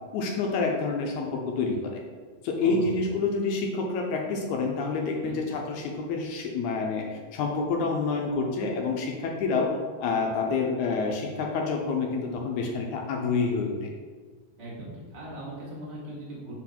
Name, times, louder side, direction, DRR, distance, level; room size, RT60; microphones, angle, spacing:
voice 1, 0.1-2.0 2.4-13.9, left 4 dB, 75° left, 1 dB, 1.8 m, -28 dB
voice 2, 2.6-3.1 5.2-5.5 14.6-16.5, right 1 dB, 20° right, -5 dB, 1.3 m, -39 dB
4.9 x 4.0 x 5.8 m, 1.5 s
omnidirectional pair, 4.0 m